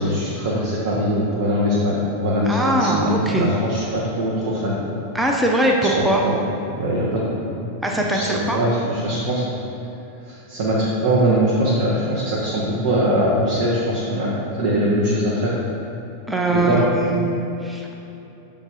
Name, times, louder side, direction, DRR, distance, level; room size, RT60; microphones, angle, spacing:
voice 1, 0.0-4.8 6.0-6.4 6.8-7.3 7.9-9.4 10.3-14.3 14.6-15.6 16.5-16.8, equal, 50° right, -7 dB, 1.0 m, -21 dB
voice 2, 2.5-3.5 5.1-6.2 7.8-8.6 16.3-17.9, right 1 dB, 5° right, -1 dB, 0.6 m, -21 dB
6.7 x 3.7 x 4.5 m, 3.0 s
figure-of-eight pair, 90°, 0 cm